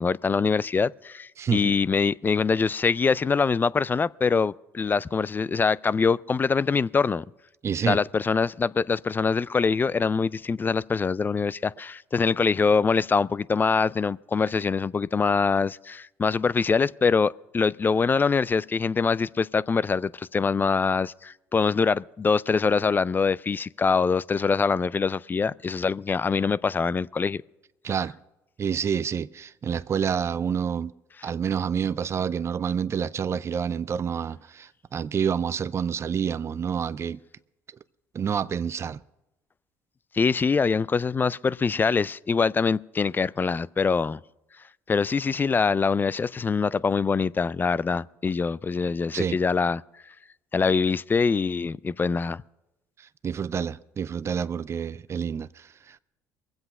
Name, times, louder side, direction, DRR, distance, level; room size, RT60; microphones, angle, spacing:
voice 1, 0.0-7.2 7.9-27.4 31.2-31.3 40.1-44.2 44.9-49.8 50.5-52.4, left 5 dB, 25° left, 0.4 m, -24 dB
voice 2, 7.6-8.0 27.8-28.1 28.6-30.9 31.2-37.2 38.1-39.0 49.1-49.4 53.2-56.0, right 7 dB, 35° right, 0.5 m, -28 dB
22.5 x 8.0 x 5.5 m
hypercardioid pair, 65°, 7 cm